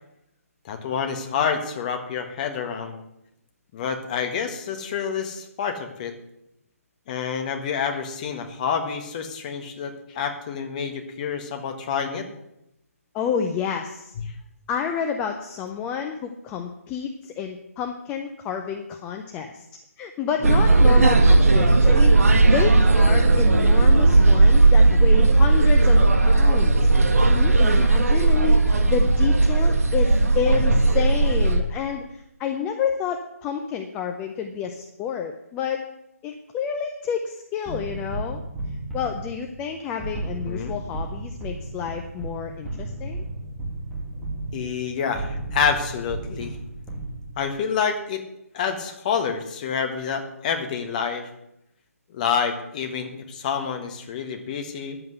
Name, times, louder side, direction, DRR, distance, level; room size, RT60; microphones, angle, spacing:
voice 1, 0.6-3.0 3.7-6.2 7.1-12.3 20.4-20.6 40.5-40.7 44.5-46.6 47.4-48.2 48.5-51.3 52.1-55.0, left 6 dB, 30° left, 6 dB, 1.5 m, -28 dB
voice 2, 13.1-14.1 14.7-19.7 20.0-26.7 27.3-28.6 28.9-35.8 36.2-38.4 38.9-43.2, left 7 dB, 15° left, 4 dB, 0.5 m, -29 dB
sound 1, 20.4-31.6, right 2 dB, 65° right, 1.9 m, -16 dB
sound 2, 37.7-47.6, right 2 dB, 5° right, 2.1 m, -34 dB
10.5 x 7.8 x 7.9 m, 0.82 s
hypercardioid pair, 160°, 8 cm